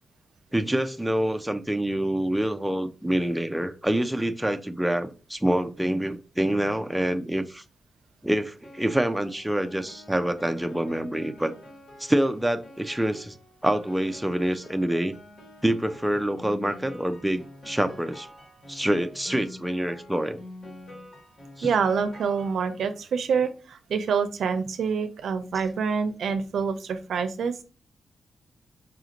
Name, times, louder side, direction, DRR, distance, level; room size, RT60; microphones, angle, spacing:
voice 1, 0.5-7.6 8.2-11.5 12.0-13.4 13.6-15.1 15.6-18.3 18.7-20.4 21.6-21.7, right 1 dB, 5° right, 0.3 m, -26 dB
Piano, 8.6-23.0, left 1 dB, 60° left, 1.6 m, -47 dB
voice 2, 21.6-27.6, right 6 dB, 80° right, 0.5 m, -26 dB
4.9 x 2.5 x 2.9 m
wide cardioid pair, 130°, 0 cm